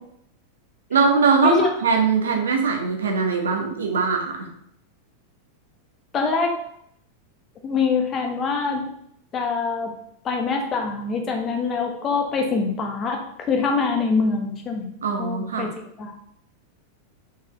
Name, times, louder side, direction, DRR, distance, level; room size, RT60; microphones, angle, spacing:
voice 1, 0.9-4.5 15.0-15.7, right 5 dB, 65° right, 2 dB, 1.1 m, -21 dB
voice 2, 6.1-6.5 7.6-8.9 9.3-9.9 10.2-14.9 15.2-16.1, left 4 dB, 30° left, 3 dB, 1.2 m, -24 dB
5.4 x 4.4 x 3.9 m, 0.72 s
figure-of-eight pair, 90°, 0 cm